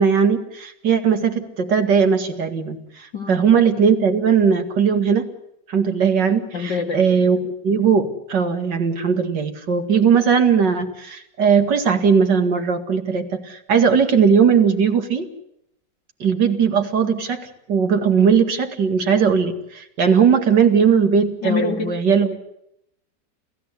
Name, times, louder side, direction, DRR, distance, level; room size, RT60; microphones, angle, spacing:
voice 1, 0.0-5.3 5.7-15.3 16.2-22.3, right 6 dB, 80° right, 6 dB, 2.7 m, -18 dB
voice 2, 6.5-7.4 21.4-21.9, left 4 dB, 80° left, 4 dB, 3.0 m, -25 dB
28.5 x 16.0 x 8.2 m, 0.80 s
omnidirectional pair, 1.8 m